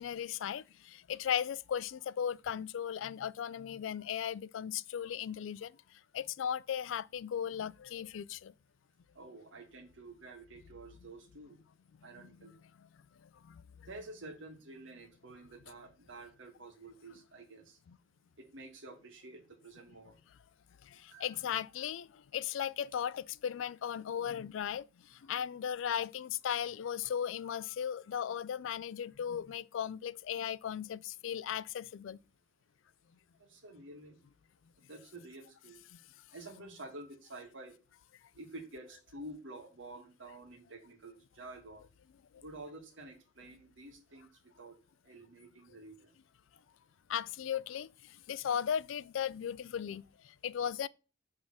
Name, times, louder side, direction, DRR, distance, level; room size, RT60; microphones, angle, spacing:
voice 1, 0.0-5.7 6.1-8.5 13.4-13.6 17.9-18.0 20.8-24.8 25.1-32.2 35.9-36.0 42.3-42.4 47.1-50.9, left 9 dB, 75° left, 0.3 m, -37 dB
voice 2, 9.2-11.6 12.0-12.6 13.9-17.8 18.4-20.2 21.1-21.5 33.4-34.2 34.9-35.8 36.3-37.7 38.4-41.9 42.4-44.3 44.6-44.8 45.1-46.1, right 2 dB, 70° right, 1.7 m, -50 dB
6.4 x 3.5 x 6.1 m
head